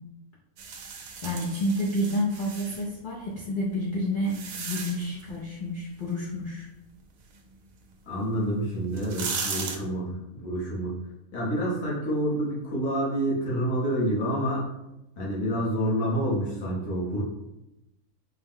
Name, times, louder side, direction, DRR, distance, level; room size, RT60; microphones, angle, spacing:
sound 1, 0.6-2.9 3.6-5.2 8.2-8.3 8.8-9.8, right 5 dB, 70° right, 1.0 m, -36 dB
voice 1, 1.2-6.7, equal, 50° left, -6 dB, 0.6 m, -29 dB
voice 2, 8.1-10.9 11.3-14.7 15.2-17.2, right 1 dB, 80° left, -5 dB, 1.6 m, -28 dB
4.4 x 2.1 x 3.6 m, 0.92 s
omnidirectional pair, 1.6 m